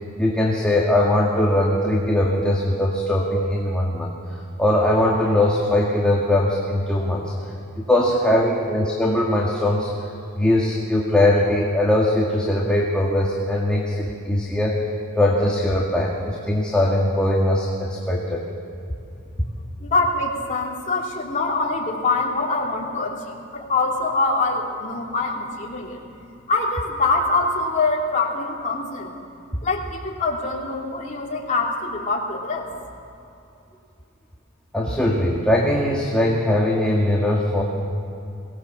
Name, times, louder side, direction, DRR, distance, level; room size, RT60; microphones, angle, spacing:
voice 1, 0.2-4.1 4.6-7.3 7.9-9.9 10.3-14.7 15.2-18.4 34.7-37.6, left 1 dB, 5° left, -3 dB, 2.0 m, -20 dB
voice 2, 19.8-26.0 26.5-29.1 29.6-32.7, left 3 dB, 40° left, -2 dB, 3.1 m, -24 dB
23.5 x 18.0 x 7.3 m, 2.6 s
head